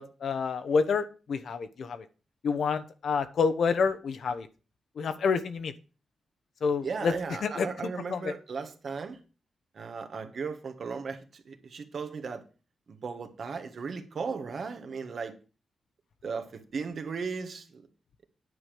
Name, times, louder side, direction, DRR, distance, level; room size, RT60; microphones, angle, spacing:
voice 1, 0.0-2.0 2.4-4.5 5.0-5.7 6.6-7.1 7.4-7.7 8.1-8.3, left 5 dB, 65° left, 1.0 m, -28 dB
voice 2, 6.8-9.2 9.7-11.2 11.4-12.4 12.9-15.4 16.2-17.8, right 5 dB, 55° right, 1.6 m, -36 dB
9.6 x 5.1 x 7.8 m
cardioid pair, 115°, 0 cm